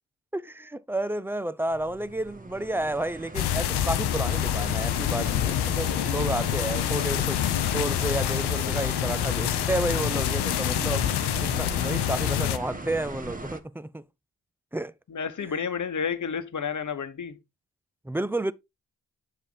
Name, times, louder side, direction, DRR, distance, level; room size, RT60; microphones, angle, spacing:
voice 1, 0.3-7.4 7.7-11.1 11.4-14.0 14.7-14.9 15.4-15.5 18.0-18.5, right 1 dB, 5° right, 0.4 m, -31 dB
sound 1, 1.7-13.6, right 2 dB, 20° right, 1.0 m, -39 dB
sound 2, 3.3-12.6, left 11 dB, 85° left, 0.6 m, -26 dB
voice 2, 15.1-17.4, left 6 dB, 50° left, 1.1 m, -31 dB
7.3 x 5.7 x 3.3 m
supercardioid pair, 45°, 39 cm